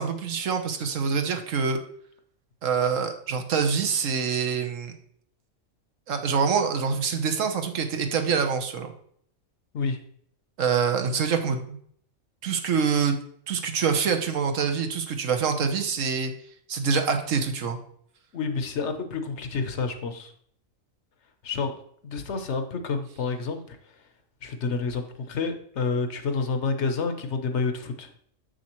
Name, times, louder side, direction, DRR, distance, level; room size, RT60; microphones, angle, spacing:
voice 1, 0.0-1.8 2.6-4.9 6.1-8.9 10.6-11.8 12.4-13.2 13.5-16.3 16.7-17.8, right 6 dB, 75° right, 5 dB, 1.2 m, -25 dB
voice 2, 18.3-20.3 21.4-23.8 24.4-28.1, left 4 dB, 60° left, 7 dB, 1.0 m, -29 dB
7.3 x 6.5 x 3.0 m, 0.64 s
omnidirectional pair, 1.4 m